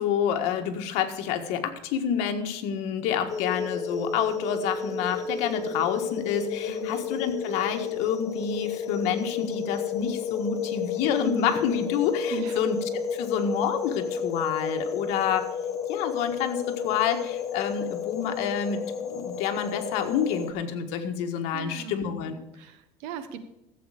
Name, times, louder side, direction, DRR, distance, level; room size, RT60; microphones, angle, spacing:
voice 1, 0.0-15.5 15.9-22.4, left 8 dB, 75° left, 6 dB, 1.6 m, -28 dB
sound 1, 3.3-20.5, left 6 dB, 30° left, 1.2 m, -32 dB
voice 2, 21.5-22.0 22.5-23.4, right 6 dB, 85° right, 11 dB, 1.3 m, -37 dB
14.5 x 8.0 x 5.0 m, 0.94 s
cardioid pair, 155°, 11 cm